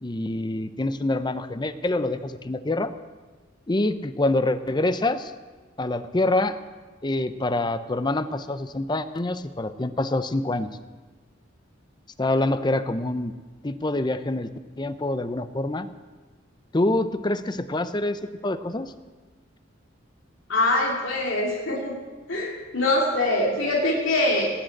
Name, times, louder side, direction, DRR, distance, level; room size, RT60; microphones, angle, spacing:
voice 1, 0.0-2.9 3.7-5.3 5.8-6.6 7.0-10.7 12.2-13.3 13.6-14.5 14.8-15.9 16.7-18.9, left 2 dB, 20° left, 12 dB, 0.6 m, -26 dB
voice 2, 20.5-22.0 22.3-24.5, left 2 dB, 80° left, -2 dB, 2.4 m, -23 dB
19.0 x 6.4 x 8.6 m, 1.3 s
head